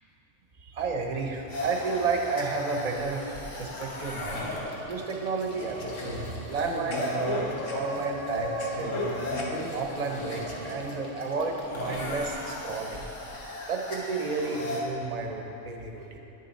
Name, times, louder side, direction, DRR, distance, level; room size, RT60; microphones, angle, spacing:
voice 1, 0.6-4.5 4.9-9.2 9.7-13.0 13.7-16.2, right 4 dB, 40° right, 2 dB, 0.7 m, -32 dB
sound 1, 1.5-14.8, left 1 dB, 75° left, 1.5 m, -35 dB
9.8 x 7.0 x 4.1 m, 3.0 s
omnidirectional pair, 1.3 m